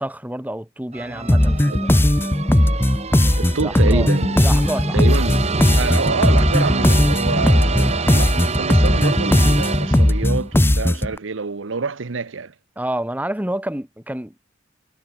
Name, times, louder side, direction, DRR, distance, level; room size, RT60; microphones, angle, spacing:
voice 1, 0.0-2.1 3.6-4.1 4.4-5.2 12.8-14.4, right 1 dB, 10° right, 1.6 m, -29 dB
sound 1, 0.9-10.4, right 3 dB, 35° right, 1.5 m, -27 dB
sound 2, 1.3-11.1, left 1 dB, 10° left, 0.6 m, -17 dB
voice 2, 3.4-4.4 4.9-5.5 5.7-12.5, right 4 dB, 75° right, 0.8 m, -26 dB
head